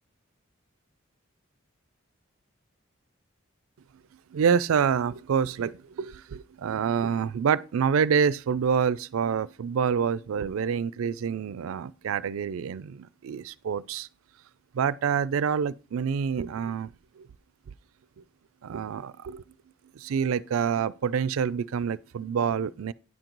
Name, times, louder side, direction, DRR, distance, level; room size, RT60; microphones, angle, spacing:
voice 1, 4.3-14.1 14.7-16.9 17.2-17.3 18.2-18.3 18.6-19.4 19.9-22.9, right 7 dB, 80° right, 0.4 m, -27 dB
9.6 x 3.9 x 4.5 m
head